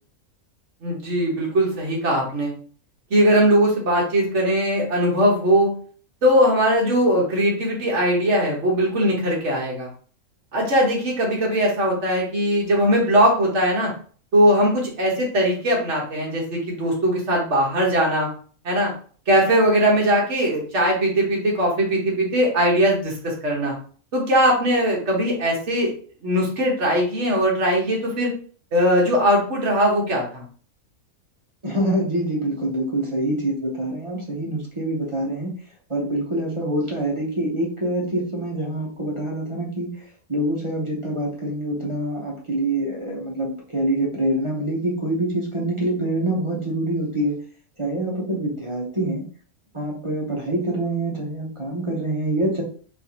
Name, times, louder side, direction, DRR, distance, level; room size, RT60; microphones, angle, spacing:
voice 1, 0.8-2.5 3.1-5.7 6.2-9.9 10.5-13.9 14.3-18.3 18.6-18.9 19.3-23.7 24.1-25.9 26.2-28.3 28.7-30.4, equal, 55° right, -2 dB, 1.5 m, -20 dB
voice 2, 31.6-35.5 35.9-39.9 40.3-47.3 47.8-49.2 49.7-52.6, right 1 dB, 30° right, -2 dB, 0.7 m, -25 dB
3.9 x 2.6 x 2.8 m, 0.43 s
omnidirectional pair, 1.5 m